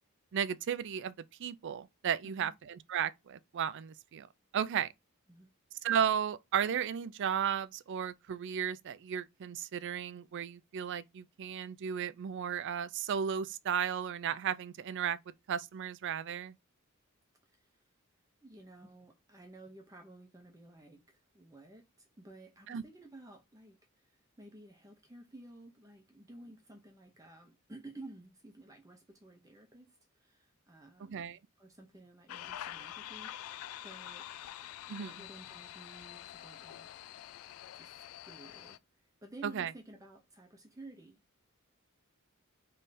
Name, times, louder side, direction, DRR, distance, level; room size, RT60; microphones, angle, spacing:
voice 1, 0.3-1.1 1.4-4.3 4.5-4.9 5.8-15.2 15.5-16.5 22.7-22.8 31.1-31.4 34.9-35.1 39.5-39.7, right 8 dB, 55° right, 0.4 m, -34 dB
voice 2, 2.2-2.6 5.3-5.5 17.4-17.8 18.4-34.3 35.0-36.9 37.7-41.2, right 2 dB, 15° right, 0.8 m, -53 dB
sound 1, 32.3-38.8, left 12 dB, 75° left, 0.3 m, -46 dB
3.4 x 3.3 x 4.1 m
head